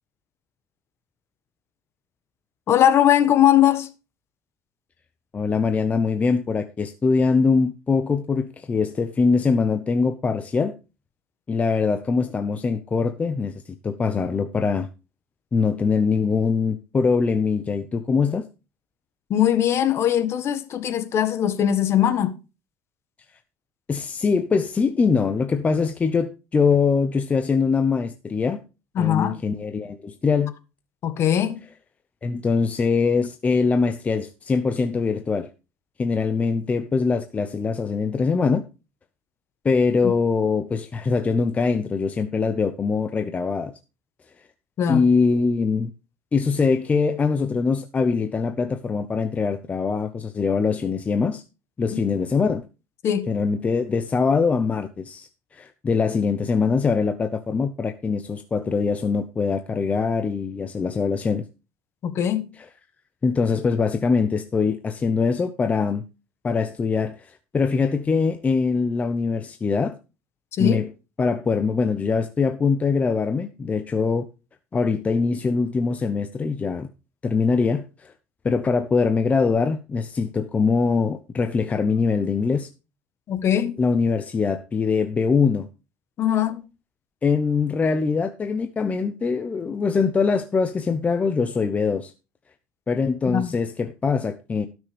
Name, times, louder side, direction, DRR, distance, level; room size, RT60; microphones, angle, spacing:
voice 1, 2.7-3.9 19.3-22.3 28.9-29.4 31.0-31.6 40.0-40.1 44.8-45.1 53.0-53.3 62.0-62.4 70.6-70.8 83.3-83.7 86.2-86.6 93.3-93.6, left 10 dB, 45° left, 1.5 m, -20 dB
voice 2, 5.3-10.7 11.5-13.5 13.8-14.9 15.5-18.5 23.9-28.6 29.0-30.5 32.2-35.5 36.0-38.6 39.6-43.7 44.9-45.9 46.3-51.4 51.8-52.6 53.3-61.4 63.2-66.0 66.4-69.9 70.6-70.9 71.2-74.3 74.7-76.9 77.2-78.1 78.4-82.7 83.8-85.7 87.2-92.1 92.9-94.7, left 5 dB, 25° left, 0.8 m, -23 dB
17.5 x 6.3 x 3.4 m
cardioid pair, 120°, 6 cm